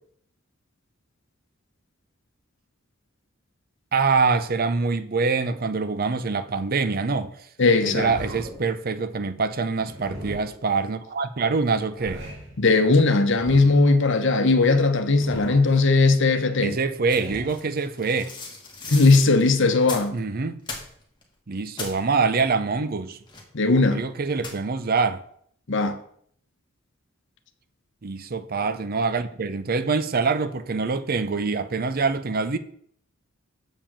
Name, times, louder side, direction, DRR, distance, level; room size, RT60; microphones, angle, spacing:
voice 1, 3.9-7.5 7.8-12.2 16.6-18.2 20.1-20.6 21.5-23.2 23.9-25.2 28.0-32.6, right 4 dB, 45° right, 0.6 m, -25 dB
voice 2, 7.6-8.1 12.6-16.8 18.9-20.2 23.5-24.0 25.7-26.0, left 3 dB, 60° left, 1.0 m, -18 dB
sound 1, 8.0-8.7 9.8-10.7 11.7-12.6 13.3-13.9 14.9-15.8 16.8-17.6, equal, 60° right, 2.4 m, -39 dB
sound 2, 17.1-20.2 20.6-21.2 21.5-22.0 23.3-23.7 24.4-24.8, left 3 dB, 20° left, 1.7 m, -38 dB
7.2 x 5.0 x 7.2 m
head